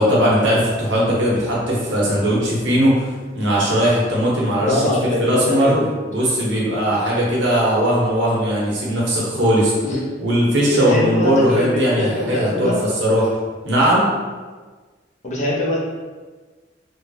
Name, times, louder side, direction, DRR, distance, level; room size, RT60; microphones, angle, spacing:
voice 1, 0.0-4.9 5.2-5.7 6.1-9.7 10.2-13.3 13.6-14.1, equal, 90° right, -5 dB, 1.0 m, -18 dB
voice 2, 4.7-5.9 9.8-10.0 10.6-12.8 15.2-15.8, left 1 dB, 40° left, -4 dB, 0.6 m, -22 dB
3.2 x 2.3 x 2.7 m, 1.4 s
head